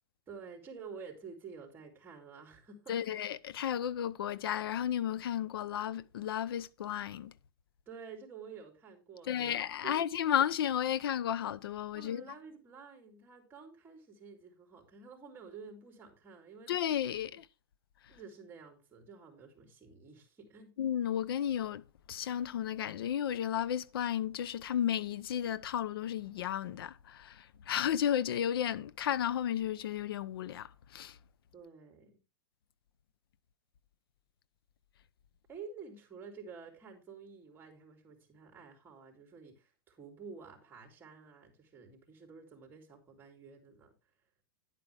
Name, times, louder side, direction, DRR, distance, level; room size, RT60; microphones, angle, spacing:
voice 1, 0.3-3.1 7.9-9.6 9.8-10.0 11.9-16.7 18.1-20.7 31.5-32.2 35.5-43.9, right 5 dB, 15° right, 3.5 m, -50 dB
voice 2, 2.9-7.3 9.3-12.2 16.7-17.5 20.8-31.2, left 10 dB, 80° left, 0.8 m, -33 dB
10.5 x 9.1 x 3.5 m
supercardioid pair, 140°, 12 cm